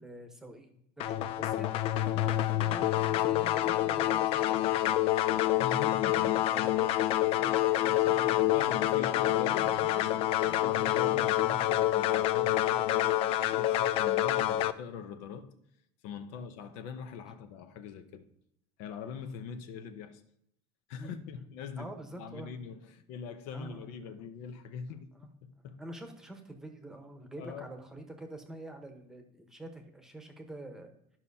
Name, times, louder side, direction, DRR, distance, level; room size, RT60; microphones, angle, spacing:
voice 1, 0.0-5.5 6.1-8.5 9.0-9.8 10.1-10.6 16.3-16.4 21.0-21.4 21.8-22.5 23.5-24.1 24.9-25.3 25.6-30.9, right 1 dB, 5° right, 1.0 m, -47 dB
sound 1, 1.0-14.7, left 13 dB, 45° left, 0.4 m, -27 dB
voice 2, 5.6-6.5 8.1-9.8 10.6-15.5 16.0-18.3 18.8-20.2 20.9-25.8 27.4-27.7, left 6 dB, 65° left, 0.8 m, -42 dB
12.5 x 5.6 x 2.8 m
cardioid pair, 150°, 13 cm